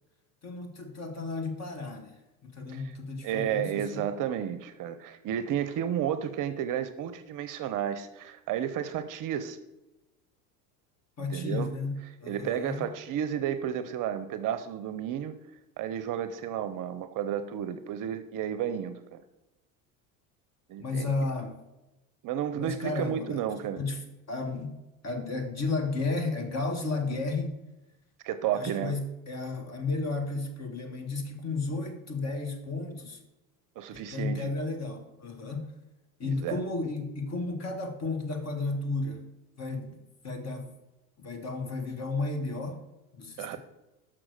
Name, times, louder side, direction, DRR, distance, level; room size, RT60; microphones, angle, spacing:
voice 1, 0.4-4.1 11.2-12.9 20.8-21.6 22.5-24.0 24.3-24.8 25.0-27.6 28.5-33.2 33.9-35.7 36.2-39.2 39.6-40.7 41.2-42.8 43.1-43.6, left 3 dB, 35° left, 6 dB, 1.7 m, -33 dB
voice 2, 3.2-9.6 11.3-11.7 12.2-15.3 15.8-19.2 20.7-21.1 22.2-23.8 28.2-28.9 33.8-34.5 36.2-36.6 43.4-43.6, right 9 dB, 45° right, 12 dB, 0.7 m, -32 dB
6.1 x 6.0 x 6.5 m, 1.0 s
hypercardioid pair, 85°, 46 cm